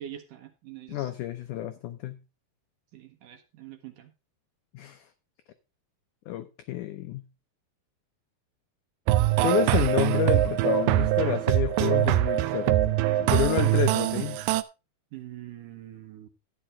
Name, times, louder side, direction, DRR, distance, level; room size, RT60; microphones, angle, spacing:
voice 1, 0.0-1.1 2.9-4.1 15.1-16.3, right 12 dB, 65° right, 7 dB, 2.4 m, -44 dB
voice 2, 0.9-2.2 4.7-5.1 6.3-7.3 9.4-12.8 13.2-14.4, left 12 dB, 90° left, 9 dB, 1.7 m, -29 dB
sound 1, 9.1-14.6, right 15 dB, 85° right, 1.9 m, -23 dB
12.5 x 9.7 x 3.5 m, 0.28 s
omnidirectional pair, 4.6 m